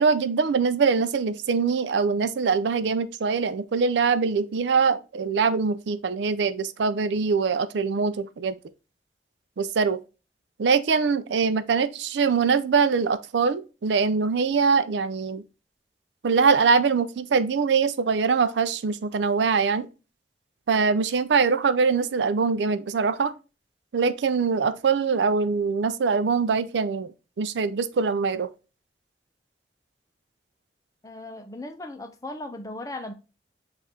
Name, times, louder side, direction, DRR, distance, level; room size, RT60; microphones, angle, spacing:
voice 1, 0.0-8.6 9.6-10.0 10.6-15.4 16.2-19.9 20.7-23.3 23.9-27.1 27.4-28.5, right 5 dB, 85° right, 0.4 m, -23 dB
voice 2, 31.0-33.1, left 2 dB, 20° left, 0.5 m, -37 dB
7.3 x 2.5 x 2.8 m
head